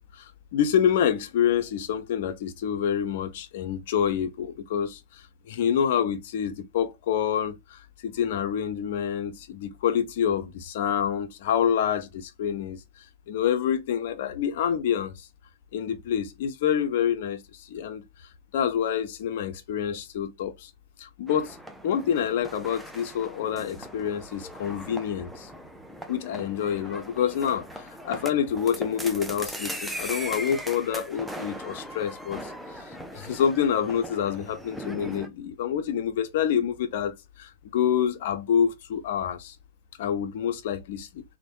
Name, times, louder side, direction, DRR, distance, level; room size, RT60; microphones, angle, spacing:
voice 1, 0.0-12.8 13.3-15.3 15.7-18.0 18.5-20.7 21.0-21.6 21.8-25.5 26.1-39.6 40.0-41.2, left 8 dB, 55° left, 0.5 m, -27 dB
sound 1, 21.3-35.3, equal, 5° right, 0.5 m, -39 dB
3.0 x 2.1 x 2.7 m
figure-of-eight pair, 90°, 0 cm